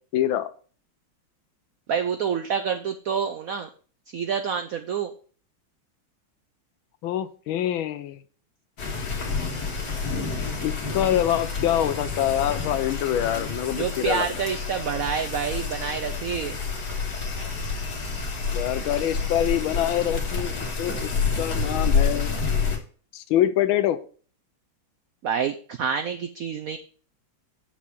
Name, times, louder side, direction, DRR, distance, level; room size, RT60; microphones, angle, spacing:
voice 1, 0.1-0.5 7.0-8.2 10.6-14.3 18.5-22.3 23.1-24.0, left 11 dB, 80° left, 12 dB, 1.5 m, -25 dB
voice 2, 1.9-3.7 4.1-5.1 13.7-16.6 25.2-26.8, right 7 dB, 80° right, 7 dB, 0.7 m, -27 dB
sound 1, 8.8-22.8, left 5 dB, 55° left, 2.3 m, -28 dB
8.3 x 6.0 x 4.3 m, 0.42 s
omnidirectional pair, 2.2 m